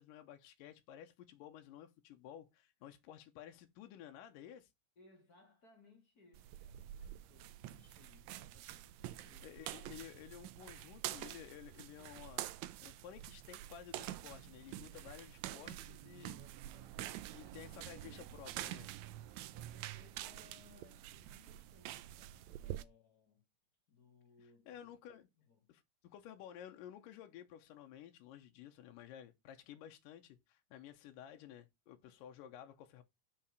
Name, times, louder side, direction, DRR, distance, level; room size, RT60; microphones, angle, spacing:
voice 1, 0.0-4.7 9.4-12.5 12.8-16.4 17.3-18.9 24.7-25.3 25.7-33.0, left 10 dB, 80° left, 2.5 m, -53 dB
voice 2, 5.0-9.8 16.2-18.7 19.4-23.5 23.9-24.9 25.4-25.7, left 3 dB, 30° left, 2.5 m, -66 dB
sound 1, 6.3-22.8, right 14 dB, 85° right, 1.6 m, -47 dB
5.8 x 5.7 x 6.6 m
omnidirectional pair, 3.8 m